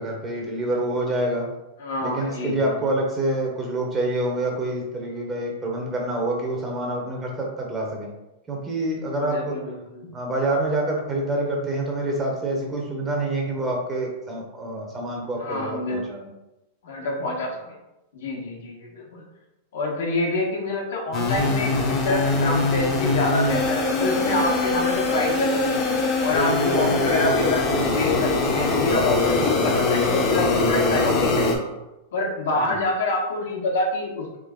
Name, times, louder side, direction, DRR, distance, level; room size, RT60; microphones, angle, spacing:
voice 1, 0.0-1.5 2.0-8.1 8.5-9.6 10.1-16.3 26.7-27.0 32.6-32.8, right 1 dB, 15° right, 0 dB, 0.8 m, -27 dB
voice 2, 1.8-2.8 9.2-10.1 15.4-16.1 16.8-17.7 18.1-19.2 19.7-25.8 26.2-31.7 32.1-34.4, left 2 dB, 80° left, -1 dB, 1.4 m, -26 dB
sound 1, 21.1-31.5, left 3 dB, 30° left, 0.8 m, -22 dB
3.7 x 3.6 x 3.7 m, 0.96 s
supercardioid pair, 160°, 0 cm